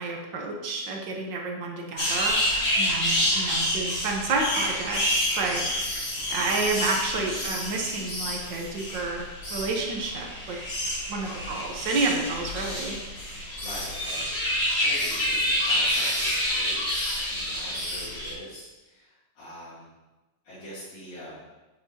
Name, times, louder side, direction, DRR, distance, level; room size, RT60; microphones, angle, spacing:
voice 1, 0.0-2.4 2.8-5.6 6.3-9.2 9.5-10.6 11.1-13.0, right 3 dB, 75° right, 0 dB, 1.0 m, -30 dB
sound 1, 2.0-18.3, left 1 dB, 30° left, 1.2 m, -28 dB
voice 2, 3.2-3.5 11.0-11.6 13.6-19.9 20.4-21.4, left 1 dB, 80° left, -14 dB, 4.2 m, -43 dB
8.6 x 8.0 x 2.9 m, 1.1 s
omnidirectional pair, 3.4 m